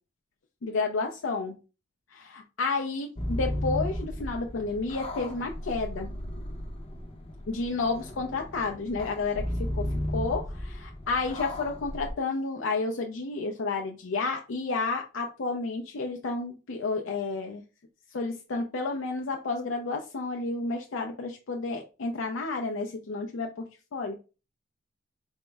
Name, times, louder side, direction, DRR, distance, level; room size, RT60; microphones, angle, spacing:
voice 1, 0.6-1.6 2.1-6.1 7.5-17.6 18.1-24.2, left 3 dB, 75° left, 0.5 m, -31 dB
sound 1, 3.2-12.1, left 1 dB, 30° left, 0.7 m, -35 dB
4.4 x 2.0 x 3.4 m
head